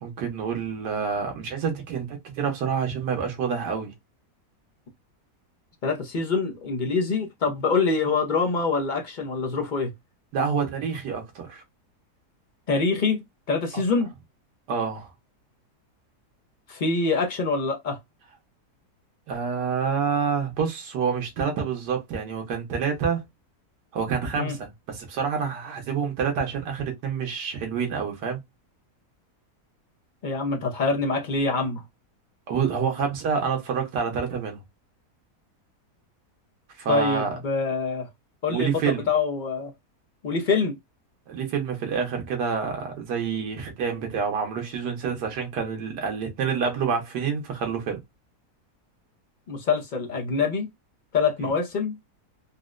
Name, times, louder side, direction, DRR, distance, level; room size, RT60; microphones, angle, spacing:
voice 1, 0.0-3.9 10.3-11.6 13.7-13.8 14.7-15.1 19.3-23.2 23.9-28.4 32.5-34.6 36.8-37.4 38.5-39.1 41.3-48.0 51.4-51.5, right 6 dB, 90° right, 1.6 m, -27 dB
voice 2, 5.8-9.9 12.7-13.2 13.5-14.1 16.7-18.0 24.4-24.5 30.2-31.8 36.9-38.1 38.4-39.7 40.2-40.8 49.5-50.7 51.1-51.9, left 4 dB, 65° left, 0.4 m, -25 dB
4.1 x 2.1 x 2.4 m
omnidirectional pair, 1.7 m